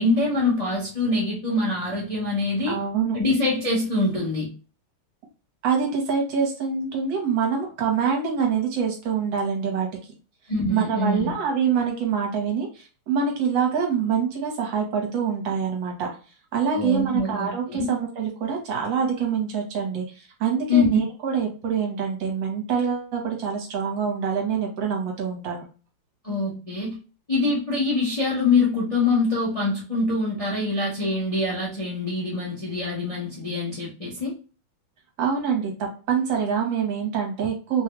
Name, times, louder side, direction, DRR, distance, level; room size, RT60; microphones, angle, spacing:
voice 1, 0.0-2.8 3.1-4.5 10.5-11.3 16.7-17.9 20.7-20.9 26.2-26.9 27.3-34.3, left 3 dB, 50° left, -6 dB, 0.4 m, -24 dB
voice 2, 2.7-3.2 5.6-9.9 10.7-16.1 16.5-25.6 35.2-37.8, right 6 dB, 65° right, 1 dB, 1.6 m, -25 dB
3.6 x 2.3 x 3.0 m, 0.35 s
omnidirectional pair, 2.4 m